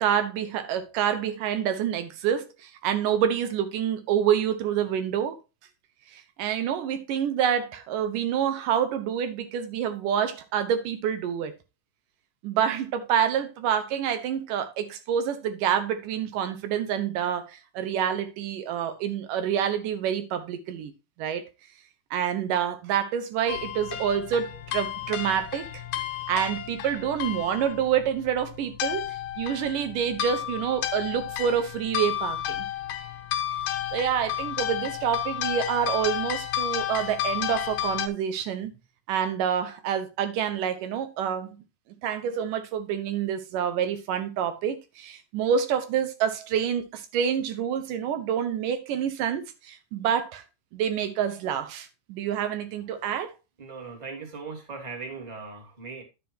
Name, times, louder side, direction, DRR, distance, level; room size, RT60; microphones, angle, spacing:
voice 1, 0.0-5.4 6.1-11.5 12.4-20.9 21.2-21.5 22.1-25.8 26.3-32.7 33.9-38.7 39.1-41.6 42.0-50.4 50.7-53.3, right 8 dB, 80° right, 2.6 m, -27 dB
sound 1, 23.5-38.1, left 11 dB, 90° left, 2.7 m, -32 dB
voice 2, 53.6-56.0, right 4 dB, 15° right, 2.3 m, -39 dB
10.5 x 8.5 x 2.8 m
omnidirectional pair, 3.8 m